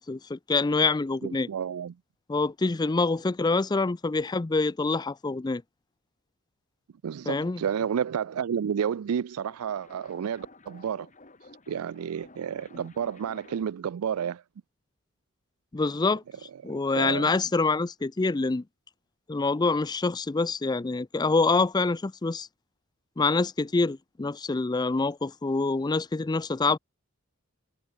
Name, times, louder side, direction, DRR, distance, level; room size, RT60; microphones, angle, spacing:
voice 1, 0.0-1.5 2.3-5.6 7.3-7.6 15.7-16.2 16.6-18.6 19.3-22.5 23.2-26.8, left 3 dB, 20° left, 0.4 m, -26 dB
voice 2, 1.2-1.9 7.0-11.1 11.7-14.4 16.6-17.4, right 8 dB, 90° right, 0.4 m, -31 dB
sound 1, 9.0-13.9, left 2 dB, 35° left, 3.7 m, -53 dB
head